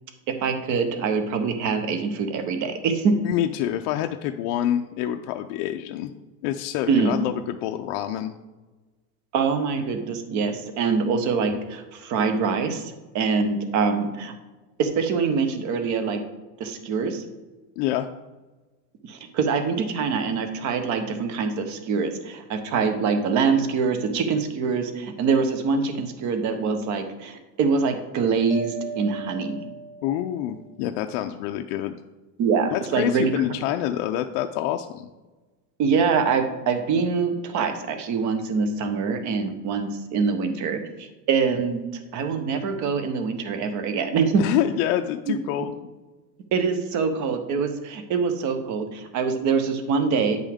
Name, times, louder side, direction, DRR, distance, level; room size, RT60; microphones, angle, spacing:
voice 1, 0.4-3.1 6.9-7.2 9.3-12.8 13.1-14.3 14.8-16.2 16.6-17.2 19.1-29.6 32.4-33.3 35.8-40.8 41.3-41.8 42.1-44.4 46.5-50.4, right 5 dB, 40° right, 7 dB, 1.0 m, -24 dB
voice 2, 3.2-6.1 6.4-8.3 17.8-18.1 30.0-31.9 32.7-35.1 44.4-45.8, left 11 dB, 50° left, 5 dB, 0.5 m, -26 dB
Mallet percussion, 28.5-30.6, right 3 dB, ahead, 1.2 m, -36 dB
9.3 x 5.4 x 3.5 m, 1.2 s
supercardioid pair, 155°, 47 cm